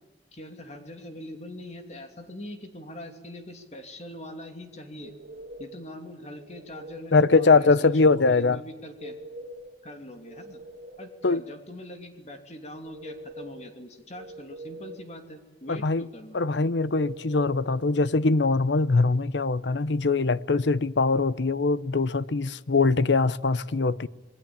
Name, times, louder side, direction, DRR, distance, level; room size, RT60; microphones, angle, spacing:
voice 1, 0.3-5.1 5.6-9.2 9.8-10.6 11.0-16.4, left 1 dB, 40° left, 2.9 m, -42 dB
sound 1, 5.0-5.9 6.3-7.2 8.8-9.8 10.1-11.2 12.7-13.7 14.1-15.1 16.7-17.8, right 1 dB, 75° right, 2.4 m, -43 dB
voice 2, 7.1-8.6 11.2-11.4 15.7-16.1 16.3-24.1, left 3 dB, 90° left, 0.8 m, -22 dB
27.0 x 21.0 x 8.8 m
head